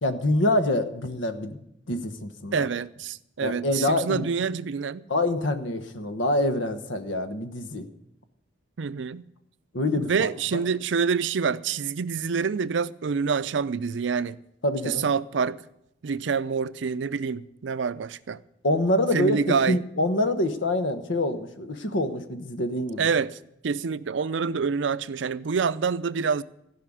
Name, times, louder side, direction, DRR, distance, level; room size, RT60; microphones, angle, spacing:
voice 1, 0.0-1.6 1.9-2.7 3.4-4.3 5.1-7.8 9.7-10.6 14.6-15.1 18.6-23.1, left 1 dB, 80° left, 1.2 m, -26 dB
voice 2, 2.5-5.1 8.8-9.2 10.0-14.4 14.8-15.6 16.0-18.4 19.1-19.8 23.0-23.4 23.6-26.4, right 5 dB, 70° right, 0.5 m, -27 dB
15.5 x 5.8 x 9.9 m
head